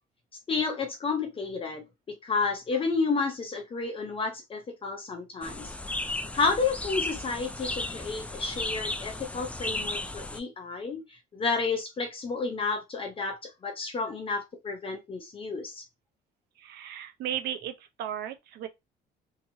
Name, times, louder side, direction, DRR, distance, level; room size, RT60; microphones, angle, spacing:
voice 1, 0.5-5.7 6.3-15.8, left 4 dB, 30° left, 0.7 m, -31 dB
sound 1, 5.4-10.4, left 2 dB, 10° left, 0.3 m, -35 dB
voice 2, 16.6-18.7, right 10 dB, 75° right, 0.7 m, -35 dB
2.9 x 2.7 x 2.7 m
cardioid pair, 110°, 17 cm